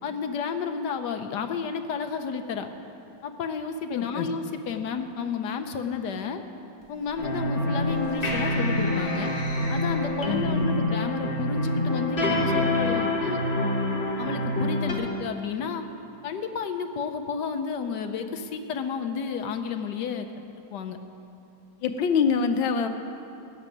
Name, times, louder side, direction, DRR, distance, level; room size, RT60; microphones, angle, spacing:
voice 1, 0.0-2.7 3.2-6.4 6.9-9.3 9.7-13.4 14.2-15.8 16.2-20.3 20.7-21.0, left 6 dB, 65° left, 7 dB, 1.3 m, -31 dB
voice 2, 3.9-4.3 10.2-10.8 21.8-22.9, left 6 dB, 80° left, 7 dB, 1.6 m, -25 dB
sound 1, 6.8-10.8, left 2 dB, 10° left, 2.4 m, -41 dB
sound 2, 7.2-14.9, left 1 dB, 30° left, 1.7 m, -26 dB
16.0 x 6.9 x 9.1 m, 2.7 s
omnidirectional pair, 2.1 m